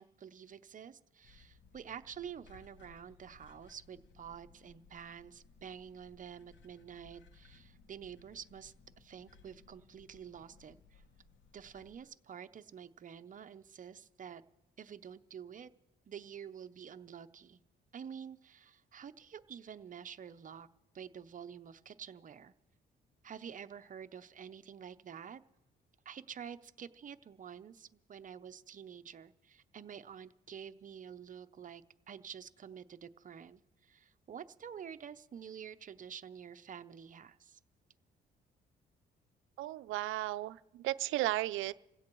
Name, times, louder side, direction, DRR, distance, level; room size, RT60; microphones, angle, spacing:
voice 1, 0.0-11.0 11.5-14.4 14.8-15.7 16.1-17.6 17.9-20.7 20.9-22.5 23.2-25.4 26.0-37.6, right 8 dB, 40° right, 11 dB, 0.7 m, -49 dB
sound 1, 1.2-12.0, left 4 dB, 70° left, 1.0 m, -62 dB
voice 2, 39.6-41.7, right 16 dB, 90° right, 15 dB, 0.4 m, -34 dB
27.0 x 16.5 x 3.1 m, 0.99 s
cardioid pair, 90°, 20 cm